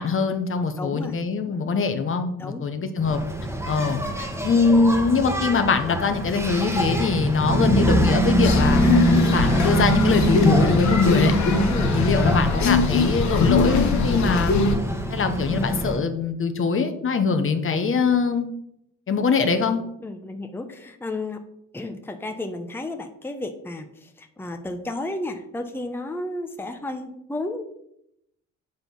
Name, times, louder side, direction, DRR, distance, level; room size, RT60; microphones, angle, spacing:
voice 1, 0.0-3.2 3.7-9.0 9.3-11.3 11.9-14.5 15.1-18.5 19.1-19.8, left 4 dB, 45° left, 7 dB, 1.0 m, -22 dB
voice 2, 0.8-1.1 2.4-2.6 11.7-11.9 20.0-21.4 21.7-27.6, left 2 dB, 5° left, 5 dB, 0.8 m, -32 dB
Engine, 3.0-16.0, right 1 dB, 10° right, 1.3 m, -24 dB
sound 1, 8.4-14.8, left 4 dB, 65° left, 1.4 m, -22 dB
8.1 x 4.4 x 5.3 m, 0.76 s
cardioid pair, 90°, 30 cm